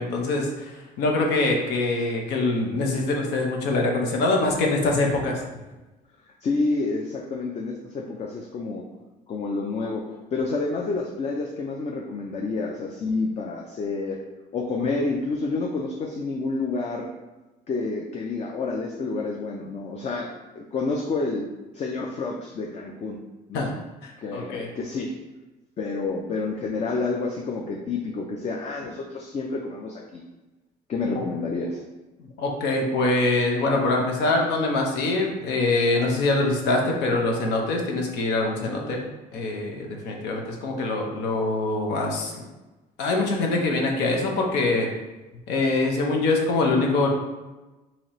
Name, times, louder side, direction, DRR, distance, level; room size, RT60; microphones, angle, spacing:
voice 1, 0.0-5.4 23.5-23.7 24.0-24.7 32.4-39.0 39.3-42.4 43.0-44.9 45.5-47.1, left 2 dB, 90° left, 1 dB, 0.8 m, -24 dB
voice 2, 6.4-8.9 9.3-10.0 10.3-14.2 14.5-17.1 17.7-20.3 20.6-21.5 21.7-23.2 23.5-23.7 24.2-25.1 25.8-30.2 30.9-31.8, left 3 dB, 40° left, 0 dB, 0.5 m, -29 dB
4.1 x 2.9 x 3.0 m, 1.1 s
cardioid pair, 110°, 17 cm